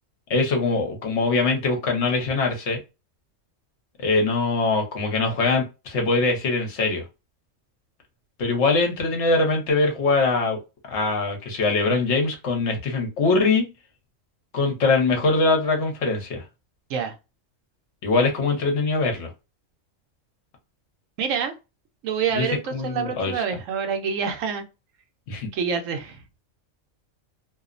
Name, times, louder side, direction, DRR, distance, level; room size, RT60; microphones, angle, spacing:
voice 1, 0.3-2.8 4.0-7.0 8.4-10.6 10.9-13.7 14.5-16.4 18.0-19.3 22.3-22.5 22.7-23.3 25.3-25.5, left 3 dB, 65° left, 1.1 m, -22 dB
voice 2, 21.2-21.5 22.0-24.6 25.5-26.2, right 6 dB, 85° right, 1.0 m, -27 dB
2.7 x 2.0 x 2.4 m
omnidirectional pair, 1.3 m